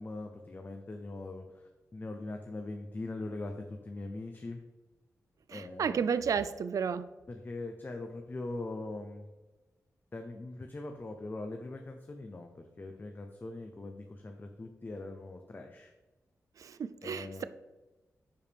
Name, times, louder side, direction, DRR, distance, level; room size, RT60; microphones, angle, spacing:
voice 1, 0.0-4.6 5.5-6.1 7.3-9.3 10.1-15.9 17.0-17.4, left 2 dB, 35° left, 4 dB, 0.7 m, -41 dB
voice 2, 5.5-7.1 16.6-17.4, right 6 dB, 70° right, 13 dB, 0.3 m, -32 dB
10.0 x 4.7 x 3.5 m, 1.1 s
wide cardioid pair, 100°, 6 cm